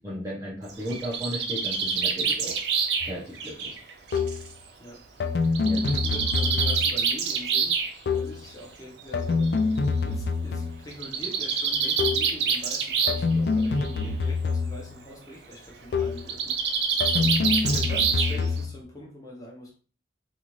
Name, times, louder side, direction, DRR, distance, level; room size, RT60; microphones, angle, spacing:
voice 1, 0.0-2.6 3.0-3.8 5.4-5.8, equal, 15° right, 0.6 m, -35 dB
Bird, 0.7-4.5 5.6-7.9 9.0-9.1 9.4-9.5 9.8-9.9 10.9-13.3 13.6-14.1 16.2-18.6, right 6 dB, 75° right, 0.5 m, -26 dB
sound 1, 3.0-3.2 4.1-4.5 5.2-7.1 8.1-8.5 9.1-10.9 12.0-12.4 13.1-15.0 15.9-16.3 17.0-18.8, left 4 dB, 65° left, 0.3 m, -26 dB
voice 2, 4.8-9.7 10.1-16.8 17.1-19.7, equal, 20° left, 0.7 m, -43 dB
2.5 x 2.4 x 3.0 m
head